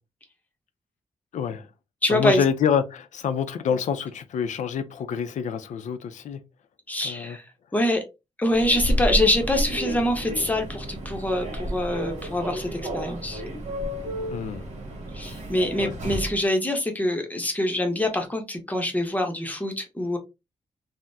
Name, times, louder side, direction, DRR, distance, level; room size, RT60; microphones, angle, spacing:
voice 1, 1.3-1.7 2.1-6.4 7.0-7.4 14.3-14.7 15.8-15.9, left 7 dB, 85° left, 0.5 m, -27 dB
voice 2, 2.0-2.4 6.9-7.4 7.7-8.0 8.4-13.4 15.1-20.2, left 1 dB, 15° left, 0.7 m, -25 dB
Human voice / Subway metro underground, 8.5-16.4, equal, 70° right, 1.1 m, -31 dB
3.5 x 2.1 x 2.6 m
wide cardioid pair, 135°, 12 cm